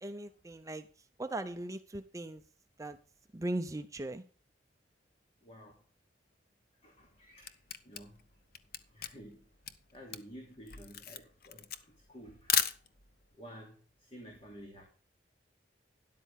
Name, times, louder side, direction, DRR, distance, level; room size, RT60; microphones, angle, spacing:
voice 1, 0.0-2.4 2.8-3.0 3.3-4.2, right 1 dB, 15° right, 0.5 m, -39 dB
voice 2, 5.4-5.8 6.8-8.2 8.9-9.4 9.9-12.7 13.4-14.8, equal, 30° left, 2.8 m, -52 dB
Camera, 7.0-13.3, left 9 dB, 55° left, 0.9 m, -36 dB
12.5 x 11.0 x 3.5 m
head